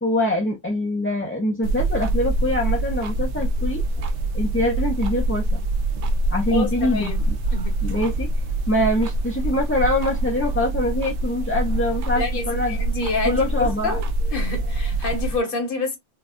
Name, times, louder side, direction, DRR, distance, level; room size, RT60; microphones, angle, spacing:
voice 1, 0.0-3.8 4.3-5.6 6.3-7.3 7.8-8.3 8.7-12.8 13.2-14.0, left 1 dB, 15° left, 0.5 m, -24 dB
sound 1, 1.6-15.4, right 2 dB, 70° right, 1.0 m, -25 dB
voice 2, 6.5-7.2 7.5-7.8 12.2-14.0 14.3-16.0, left 3 dB, 50° left, 1.5 m, -27 dB
4.6 x 2.3 x 2.4 m
omnidirectional pair, 1.2 m